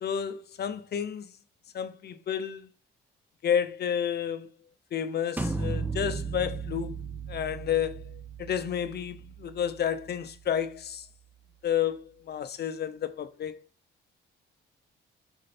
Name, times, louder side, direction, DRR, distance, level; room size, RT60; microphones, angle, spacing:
voice 1, 0.0-1.3 1.7-2.7 3.4-4.5 4.9-7.0 7.3-11.1 11.6-13.7, left 9 dB, 55° left, 0.9 m, -31 dB
sound 1, 5.4-11.0, right 4 dB, 10° right, 0.9 m, -36 dB
6.4 x 4.6 x 4.3 m
cardioid pair, 90°, 20 cm